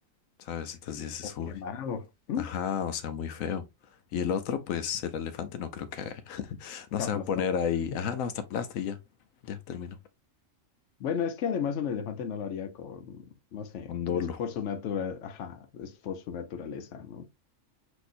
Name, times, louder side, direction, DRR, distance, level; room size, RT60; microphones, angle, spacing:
voice 1, 0.4-1.6 2.4-3.7 4.1-9.0 9.4-10.0 13.9-14.4, left 8 dB, 90° left, 1.1 m, -32 dB
voice 2, 1.5-2.5 7.0-7.4 7.9-8.0 11.0-17.2, left 7 dB, 65° left, 1.0 m, -34 dB
6.1 x 3.0 x 2.6 m
omnidirectional pair, 1.4 m